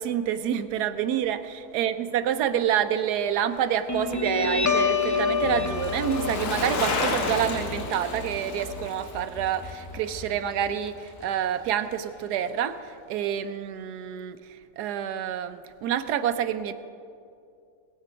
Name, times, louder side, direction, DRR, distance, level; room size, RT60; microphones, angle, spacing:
voice 1, 0.0-1.4 1.7-12.8 13.1-14.4 14.8-16.7, right 9 dB, 85° right, 10 dB, 1.2 m, -27 dB
Bicycle, 3.0-11.4 11.7-11.8, left 3 dB, 75° left, 1.7 m, -34 dB
Guitar, 3.9-10.9, left 5 dB, 25° left, 0.4 m, -29 dB
20.0 x 8.3 x 5.1 m, 2.5 s
omnidirectional pair, 1.7 m